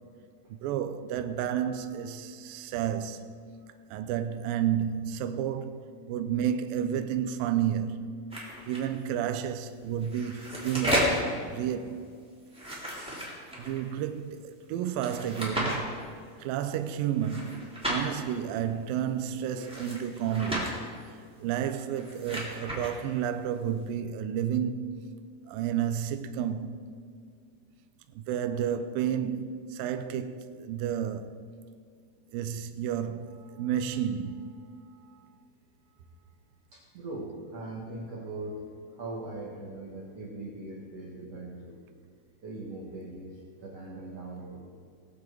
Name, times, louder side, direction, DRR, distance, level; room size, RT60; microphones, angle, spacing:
voice 1, 0.6-3.3 3.9-8.2 8.7-11.2 11.5-12.1 13.6-16.0 16.4-20.8 21.4-25.1 25.5-26.8 28.2-31.4 32.3-34.6, right 9 dB, 85° right, 2.1 m, -31 dB
sound 1, 8.3-8.8 10.0-11.3 12.5-13.8 15.0-15.8 17.2-18.0 19.5-20.7 21.8-22.9, equal, ahead, 2.0 m, -32 dB
voice 2, 36.7-38.6 39.0-41.8 42.4-44.6, right 2 dB, 60° right, 1.7 m, -40 dB
19.0 x 7.4 x 4.6 m
omnidirectional pair, 4.7 m